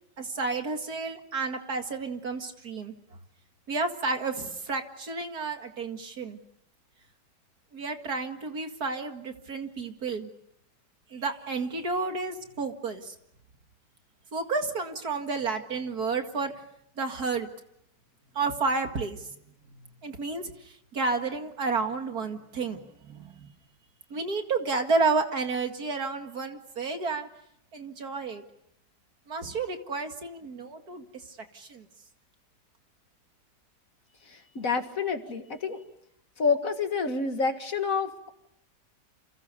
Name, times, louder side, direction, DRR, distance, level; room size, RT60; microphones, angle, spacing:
voice 1, 0.2-2.9 3.7-6.4 7.7-10.3 11.1-13.1 14.3-16.5 17.0-17.5 18.3-19.4 20.0-23.5 24.1-27.3 27.7-28.4 29.3-31.9, right 4 dB, 60° right, 5 dB, 2.6 m, -31 dB
voice 2, 34.3-35.8 36.4-38.3, left 5 dB, 50° left, 7 dB, 2.1 m, -28 dB
29.5 x 27.5 x 6.8 m, 0.77 s
omnidirectional pair, 1.9 m